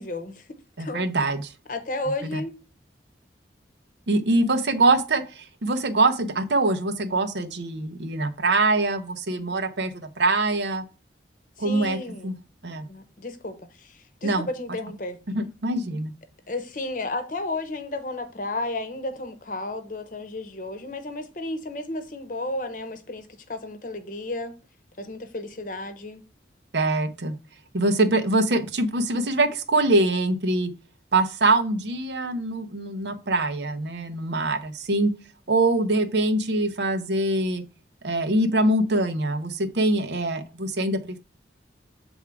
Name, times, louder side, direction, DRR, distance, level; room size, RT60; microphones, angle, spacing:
voice 1, 0.0-1.1 1.7-2.6 11.6-12.3 12.9-15.2 16.5-24.5 25.0-26.2, left 2 dB, 45° left, 0.9 m, -33 dB
voice 2, 0.8-1.5 2.2-2.4 4.1-10.8 11.6-12.0 12.2-12.3 12.6-12.8 14.2-14.5 15.3-16.1 26.7-27.3 27.7-30.7 31.1-35.1 35.5-37.6 38.0-41.2, right 2 dB, 70° right, 0.8 m, -23 dB
7.1 x 3.6 x 4.7 m
head